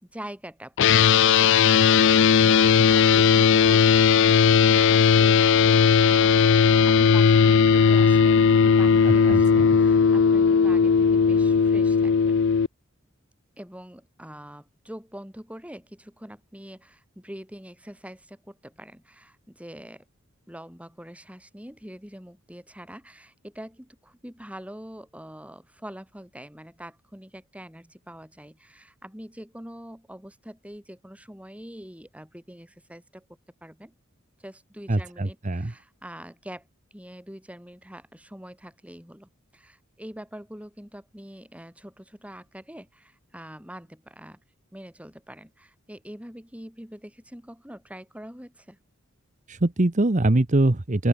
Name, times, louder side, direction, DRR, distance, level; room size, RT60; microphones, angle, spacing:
voice 1, 0.1-12.3 13.6-20.1 20.5-33.3 33.6-33.9 34.4-44.4 44.7-48.8, equal, 5° right, 8.0 m, -44 dB
sound 1, 0.8-12.7, left 6 dB, 60° left, 0.4 m, -17 dB
voice 2, 9.0-9.4 34.9-35.7 49.5-51.1, right 2 dB, 35° right, 1.0 m, -23 dB
open air
head